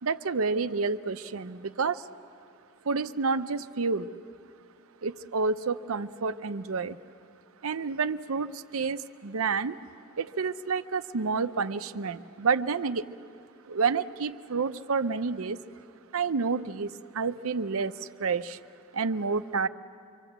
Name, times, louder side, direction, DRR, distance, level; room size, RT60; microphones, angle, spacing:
voice 1, 0.0-2.1 2.9-4.1 5.0-7.0 7.6-9.8 10.2-13.0 13.7-15.6 16.1-18.6 18.9-19.7, right 4 dB, 80° right, 11 dB, 0.7 m, -29 dB
25.0 x 25.0 x 8.0 m, 2.4 s
head